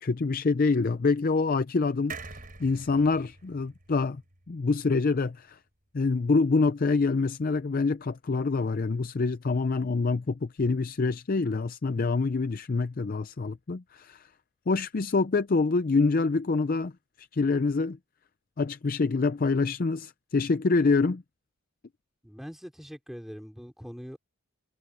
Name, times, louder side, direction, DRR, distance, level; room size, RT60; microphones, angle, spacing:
voice 1, 0.0-4.2 4.5-5.6 5.9-14.3 14.7-16.9 17.2-18.0 18.6-21.2, left 4 dB, 40° left, 0.5 m, -26 dB
sound 1, 2.1-5.6 6.0-6.1 6.3-6.4, right 4 dB, 40° right, 6.7 m, -46 dB
voice 2, 22.2-24.2, equal, ahead, 4.3 m, -42 dB
head